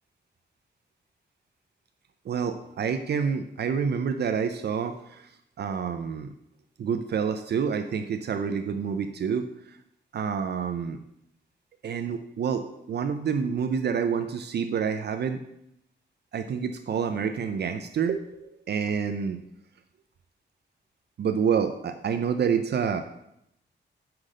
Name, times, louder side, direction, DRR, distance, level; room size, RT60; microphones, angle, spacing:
voice 1, 2.2-6.4 6.8-9.8 10.1-11.0 11.8-15.4 16.3-19.4 21.2-23.0, right 6 dB, 60° right, 7 dB, 0.5 m, -28 dB
5.9 x 5.0 x 6.4 m, 0.79 s
wide cardioid pair, 170°, 19 cm